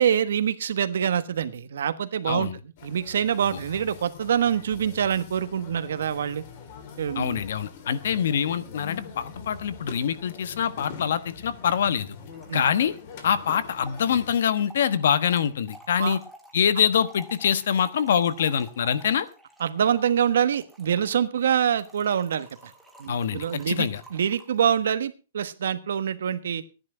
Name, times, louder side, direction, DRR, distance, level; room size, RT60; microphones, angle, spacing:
voice 1, 0.0-2.5 2.8-6.4 7.0-7.4 12.5-12.6 16.0-16.2 19.6-22.7 23.0-26.6, right 8 dB, 90° right, 12 dB, 1.3 m, -25 dB
voice 2, 2.3-2.6 7.2-12.2 12.5-12.9 13.2-16.2 16.5-19.3 23.1-24.0, left 8 dB, 65° left, 14 dB, 1.2 m, -24 dB
sound 1, 2.8-14.4, left 5 dB, 40° left, 2.2 m, -43 dB
Trickle dribble / Fill (with liquid), 11.1-11.2 11.4-11.5 11.7-24.8, right 1 dB, ahead, 1.7 m, -51 dB
14.5 x 10.5 x 4.9 m, 0.33 s
hypercardioid pair, 175°, 0 cm